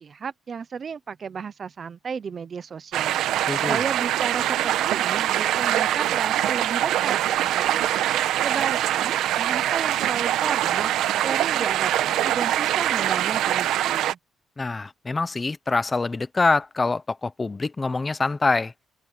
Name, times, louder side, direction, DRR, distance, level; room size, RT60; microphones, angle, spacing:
voice 1, 0.0-3.2 3.6-7.8 8.4-10.9 11.2-14.2, right 6 dB, 35° right, 0.6 m, -33 dB
sound 1, 2.9-14.1, right 12 dB, 90° right, 1.1 m, -23 dB
voice 2, 3.5-3.8 14.6-18.7, left 3 dB, 15° left, 0.8 m, -25 dB
cardioid pair, 165°, 0 cm